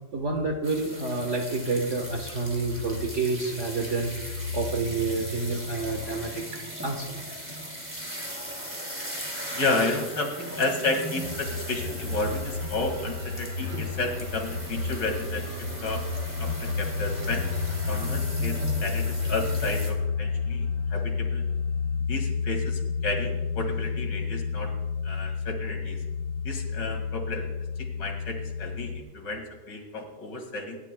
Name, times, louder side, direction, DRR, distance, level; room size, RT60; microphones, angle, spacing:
voice 1, 0.1-7.2, right 3 dB, 45° right, 2 dB, 1.5 m, -29 dB
sound 1, 0.6-19.9, equal, 5° right, 2.4 m, -38 dB
voice 2, 9.5-16.0 16.4-17.5 17.9-20.6 20.9-21.4 22.1-24.7 25.0-26.0 26.4-27.5 28.0-30.8, left 2 dB, 75° left, 4 dB, 2.7 m, -32 dB
sound 2, 11.2-22.0, left 3 dB, 65° right, 2.5 m, -35 dB
sound 3, 16.4-29.0, left 6 dB, 50° left, 1.3 m, -30 dB
27.0 x 11.5 x 2.2 m, 1.2 s
omnidirectional pair, 1.9 m